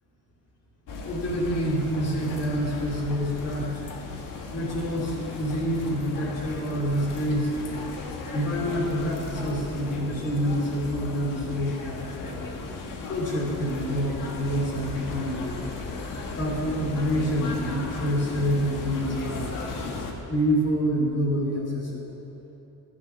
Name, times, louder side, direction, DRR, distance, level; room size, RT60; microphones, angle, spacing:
sound 1, 0.9-20.1, left 3 dB, 65° left, 1.7 m, -36 dB
voice 1, 1.0-3.7 4.5-7.5 8.3-12.5 13.1-15.6 16.4-19.5 20.3-22.2, equal, 45° left, -3 dB, 2.9 m, -27 dB
13.5 x 10.0 x 6.1 m, 2.9 s
cardioid pair, 170°, 35 cm